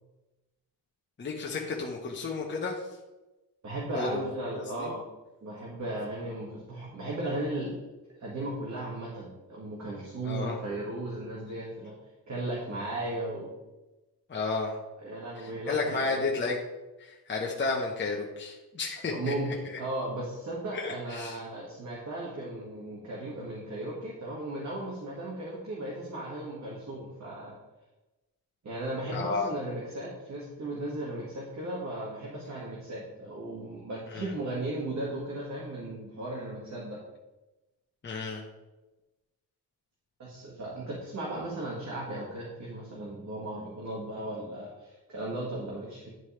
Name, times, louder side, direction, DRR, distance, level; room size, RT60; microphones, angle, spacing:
voice 1, 1.2-2.8 3.9-4.3 4.5-4.9 10.2-10.6 14.3-14.8 15.4-16.6 17.0-19.8 20.7-21.4 29.1-29.5 34.1-34.3 38.0-38.4, left 4 dB, 25° left, -2 dB, 1.1 m, -32 dB
voice 2, 3.6-5.0 5.4-7.8 8.2-11.9 12.3-13.5 15.0-16.3 19.0-27.6 28.6-37.0 40.2-46.1, right 1 dB, 40° right, -5 dB, 1.9 m, -36 dB
11.0 x 4.5 x 3.3 m, 1.1 s
cardioid pair, 115°, 42 cm